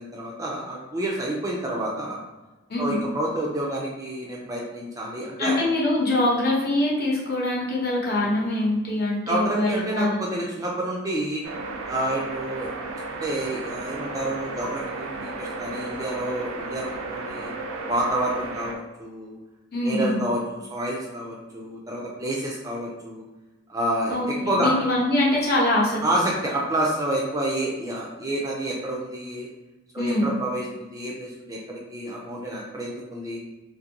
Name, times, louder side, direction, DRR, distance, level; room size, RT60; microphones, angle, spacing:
voice 1, 0.0-2.2 2.8-5.6 9.3-11.4 11.9-12.7 13.1-17.5 17.9-19.4 19.8-23.2 23.7-24.7 26.0-29.5 29.9-33.4, right 1 dB, 15° right, -3 dB, 0.3 m, -29 dB
voice 2, 5.4-10.2 19.7-20.1 24.1-26.0 30.0-30.2, left 1 dB, 45° left, -4 dB, 0.8 m, -23 dB
sound 1, 11.4-18.7, right 2 dB, 85° right, 0.4 m, -34 dB
2.5 x 2.5 x 2.8 m, 1.1 s
head